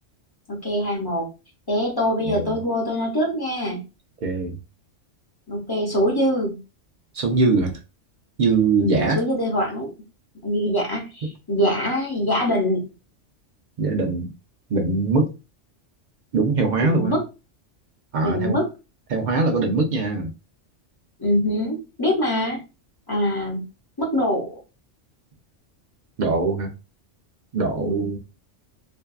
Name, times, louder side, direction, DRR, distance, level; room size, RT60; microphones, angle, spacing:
voice 1, 0.5-1.3 1.7-3.8 5.5-6.6 8.8-9.9 10.4-12.8 16.8-17.2 18.2-18.7 21.2-22.6 23.1-23.6 24.0-24.6 27.8-28.0, equal, 25° left, 0.7 m, -23 dB
voice 2, 4.2-4.6 7.1-7.8 8.4-9.2 13.8-14.3 14.7-15.3 16.3-17.2 18.1-18.6 19.1-20.3 26.2-26.7 27.5-28.2, right 3 dB, 60° right, 0.5 m, -22 dB
2.6 x 2.3 x 2.3 m
omnidirectional pair, 1.2 m